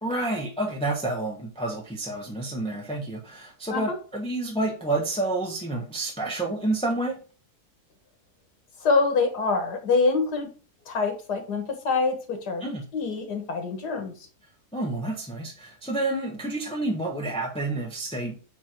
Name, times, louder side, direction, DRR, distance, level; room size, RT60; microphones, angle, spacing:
voice 1, 0.0-7.2 12.6-12.9 14.7-18.4, right 2 dB, 5° left, -1 dB, 1.1 m, -29 dB
voice 2, 8.8-10.5 10.9-12.6 12.9-14.1, left 4 dB, 85° left, 6 dB, 2.0 m, -25 dB
8.2 x 3.2 x 4.5 m, 0.36 s
omnidirectional pair, 1.7 m